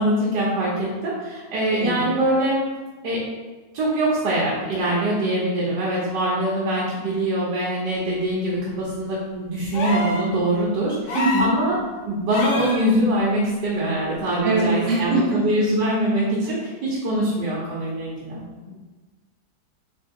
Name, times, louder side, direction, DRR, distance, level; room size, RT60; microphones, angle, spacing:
voice 1, 0.0-2.6 3.0-3.2 3.7-11.8 12.1-18.4, right 1 dB, 75° right, -5 dB, 1.5 m, -23 dB
voice 2, 1.8-2.1 11.1-11.5 14.4-15.4, right 2 dB, 40° right, -4 dB, 1.1 m, -22 dB
sound 1, 9.7-10.3 11.1-11.6 12.3-12.8 14.3-14.4, left 2 dB, 65° left, 1.2 m, -26 dB
3.6 x 3.4 x 3.5 m, 1.2 s
omnidirectional pair, 1.9 m